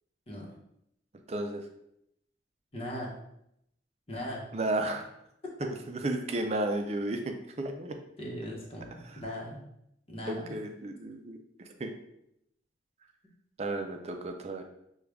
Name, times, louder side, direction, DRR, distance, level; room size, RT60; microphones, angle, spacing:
voice 1, 1.3-1.6 4.5-5.0 5.9-7.9 10.3-11.4 11.8-11.9 13.6-14.6, right 2 dB, 35° right, 5 dB, 0.4 m, -33 dB
voice 2, 2.7-3.1 4.1-4.5 8.2-9.6 10.1-10.4, equal, 30° left, -2 dB, 1.0 m, -38 dB
6.4 x 2.3 x 3.4 m, 0.78 s
head